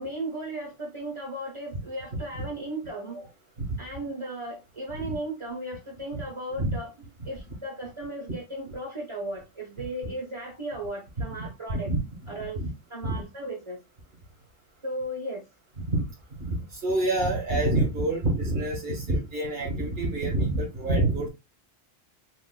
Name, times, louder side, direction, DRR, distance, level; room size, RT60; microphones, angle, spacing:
voice 1, 0.0-3.3 3.8-6.9 7.2-11.9 12.3-12.6 12.9-13.8 14.8-15.4, right 1 dB, 30° right, 1.2 m, -36 dB
voice 2, 11.3-12.7 13.0-13.2 15.8-16.0 16.4-21.3, right 2 dB, 65° right, 1.8 m, -27 dB
6.4 x 2.9 x 2.3 m
omnidirectional pair, 1.1 m